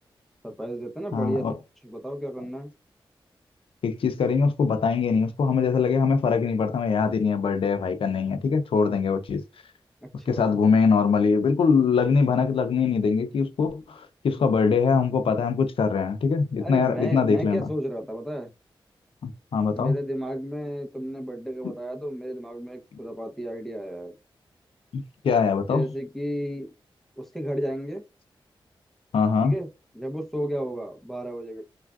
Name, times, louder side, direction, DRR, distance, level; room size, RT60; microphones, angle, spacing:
voice 1, 0.4-1.4 1.8-2.7 10.0-10.5 16.6-18.5 19.7-24.2 25.7-26.7 27.2-28.0 29.4-29.7 29.9-31.6, equal, 5° left, 0.8 m, -32 dB
voice 2, 1.1-1.5 3.8-9.4 10.3-17.7 19.2-19.9 21.6-21.7 24.9-25.8 29.1-29.5, left 5 dB, 80° left, 0.5 m, -23 dB
3.3 x 2.4 x 2.3 m
cardioid pair, 70°, 9 cm